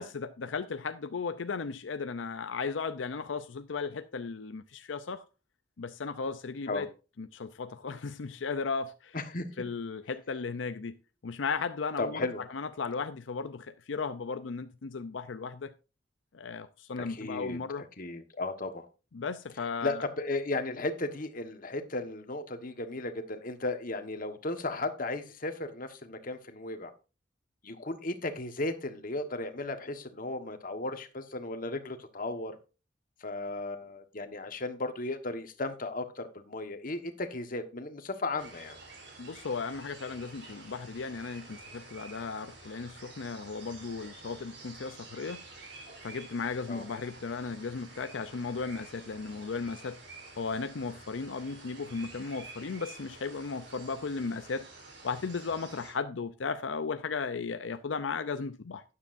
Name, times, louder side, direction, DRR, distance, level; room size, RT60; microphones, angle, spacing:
voice 1, 0.0-5.2 5.8-6.9 7.2-9.2 9.6-11.0 11.2-15.7 16.3-17.8 19.1-20.0 39.2-45.4 46.0-50.0 50.4-54.7 55.0-58.8, left 4 dB, 85° left, 0.6 m, -36 dB
voice 2, 9.1-9.5 12.0-12.4 17.0-17.6 18.0-18.9 19.8-26.9 27.6-32.6 33.2-38.8 46.7-46.8, left 2 dB, 50° left, 1.3 m, -35 dB
sound 1, 38.4-55.9, right 3 dB, 65° right, 3.9 m, -50 dB
12.0 x 9.7 x 2.6 m
head